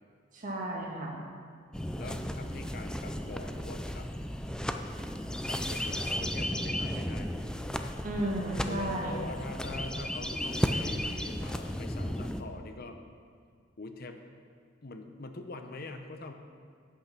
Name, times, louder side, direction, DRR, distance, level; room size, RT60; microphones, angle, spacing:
voice 1, 0.3-1.2 8.0-9.3, right 1 dB, 45° right, -2 dB, 1.8 m, -33 dB
sound 1, 1.7-12.4, equal, 5° left, 0.4 m, -34 dB
voice 2, 2.0-4.1 5.5-7.5 8.7-13.0 13.8-14.2 14.8-16.3, left 2 dB, 50° left, 6 dB, 0.8 m, -44 dB
8.7 x 8.3 x 5.9 m, 2.1 s
head